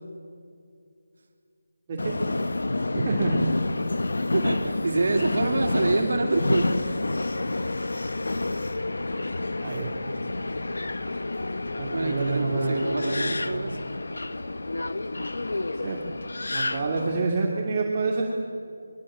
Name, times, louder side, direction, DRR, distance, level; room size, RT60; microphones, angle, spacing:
Subway metro underground, 2.0-17.2, left 2 dB, 80° left, 1.3 m, -29 dB
voice 1, 2.9-3.4 9.6-9.9 11.8-12.9 15.8-16.0 16.5-18.2, right 4 dB, 25° right, -3 dB, 2.8 m, -27 dB
voice 2, 4.3-7.0 11.9-13.8, right 3 dB, 65° right, 2 dB, 3.1 m, -26 dB
26.5 x 22.5 x 7.7 m, 2.4 s
figure-of-eight pair, 170°, 0 cm